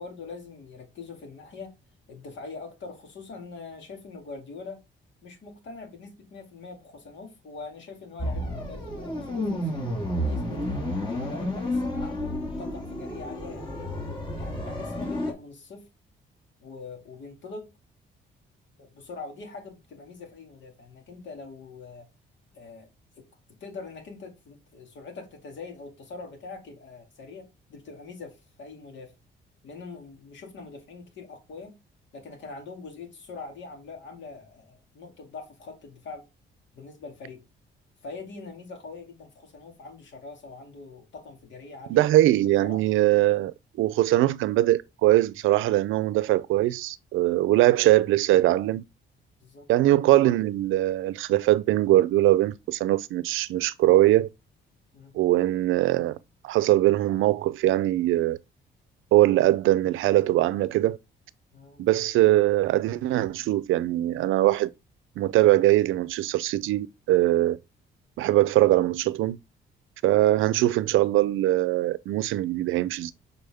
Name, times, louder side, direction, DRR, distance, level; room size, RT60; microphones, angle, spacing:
voice 1, 0.0-1.7 2.1-4.8 5.2-9.9 10.2-13.9 14.4-15.9 16.6-17.7 18.8-22.1 22.5-22.9 23.2-29.1 29.6-31.8 32.1-36.3 36.7-37.4 38.0-42.1 42.6-42.8 47.4-47.5 49.4-49.7 54.9-55.1 61.5-62.0, left 4 dB, 70° left, 2.2 m, -43 dB
sound 1, 8.2-15.3, left 1 dB, 25° left, 2.2 m, -31 dB
voice 2, 41.9-43.5 43.8-48.8 49.7-54.3 55.1-56.2 56.4-58.4 59.1-61.0 61.8-64.7 65.2-67.6 68.2-69.4 70.0-73.1, right 15 dB, 85° right, 0.5 m, -21 dB
6.8 x 4.1 x 3.5 m
cardioid pair, 90°, 20 cm